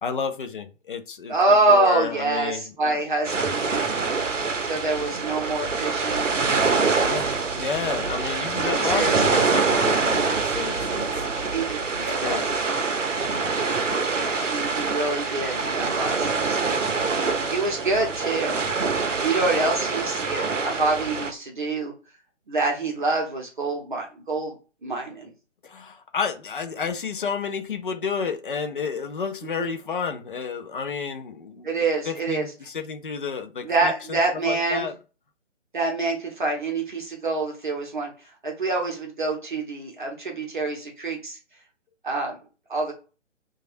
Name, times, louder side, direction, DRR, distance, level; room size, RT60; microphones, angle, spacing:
voice 1, 0.0-1.3 1.7-3.0 6.9-11.2 11.9-12.4 25.6-31.7 32.1-34.2 34.5-34.9, left 6 dB, 45° left, 0.5 m, -31 dB
voice 2, 1.3-4.0 4.6-6.5 7.0-7.2 8.6-9.5 11.5-12.4 12.7-12.8 13.1-13.4 14.2-18.7 19.2-21.9 22.5-25.3 29.6-29.7 31.6-32.5 33.6-34.9 35.7-41.4 42.0-42.4 42.7-42.9, right 2 dB, 40° right, 0.7 m, -26 dB
sound 1, 3.2-21.3, right 4 dB, 85° right, 0.7 m, -25 dB
3.1 x 2.3 x 2.5 m
figure-of-eight pair, 145°, 36 cm